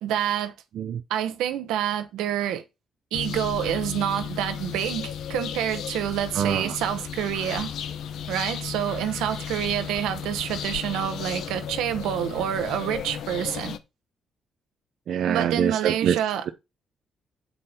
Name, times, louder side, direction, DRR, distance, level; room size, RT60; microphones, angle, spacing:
voice 1, 0.0-0.5 1.1-2.6 3.1-7.7 8.3-13.8 15.3-16.4, right 10 dB, 90° right, 1.0 m, -27 dB
sound 1, 3.1-13.8, left 8 dB, 75° left, 0.8 m, -34 dB
voice 2, 6.3-6.8 15.1-16.2, right 8 dB, 65° right, 0.6 m, -25 dB
8.4 x 4.3 x 5.8 m
cardioid pair, 90°, 0 cm